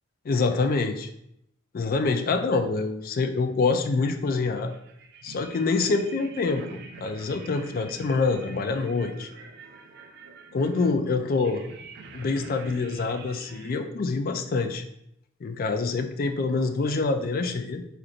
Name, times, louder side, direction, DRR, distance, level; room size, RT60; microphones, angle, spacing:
voice 1, 0.2-1.1 1.7-4.7 5.2-9.3 10.5-11.6 12.1-14.8 15.4-17.8, left 3 dB, 45° left, 7 dB, 0.4 m, -26 dB
sound 1, 4.1-13.7, right 3 dB, 55° right, 0.4 m, -46 dB
4.9 x 2.9 x 2.5 m, 0.76 s
head